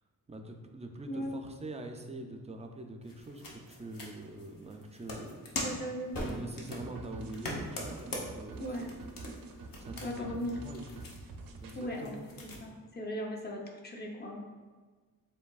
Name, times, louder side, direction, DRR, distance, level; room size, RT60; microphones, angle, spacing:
voice 1, 0.3-5.7 6.2-9.0 9.8-10.9 11.6-12.2, right 2 dB, 20° right, 4 dB, 0.3 m, -44 dB
sound 1, 3.0-12.6, left 1 dB, 75° left, 0.9 m, -44 dB
voice 2, 5.6-6.1 8.6-8.9 10.0-10.5 11.8-12.1 12.6-14.4, equal, 30° left, -1 dB, 0.6 m, -37 dB
sound 2, 6.1-10.8, equal, 45° left, 1.3 m, -47 dB
sound 3, 6.8-11.9, right 3 dB, 75° right, 0.5 m, -47 dB
7.1 x 2.7 x 2.3 m, 1.4 s
wide cardioid pair, 155°, 34 cm